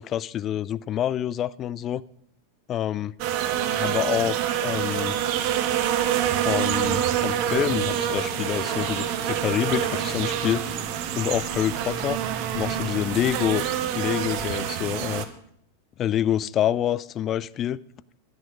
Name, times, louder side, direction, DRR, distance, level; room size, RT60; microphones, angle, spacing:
voice 1, 0.0-2.0 2.7-3.1 3.7-5.2 6.4-10.6 11.2-12.2 12.5-13.6 13.9-15.3 16.0-17.8, left 11 dB, 30° left, 19 dB, 0.3 m, -27 dB
sound 1, 3.2-15.2, right 10 dB, 45° right, 1.0 m, -26 dB
sound 2, 5.1-14.5, right 1 dB, 15° right, 4.4 m, -41 dB
10.5 x 10.5 x 5.1 m, 0.71 s
figure-of-eight pair, 90°, 0 cm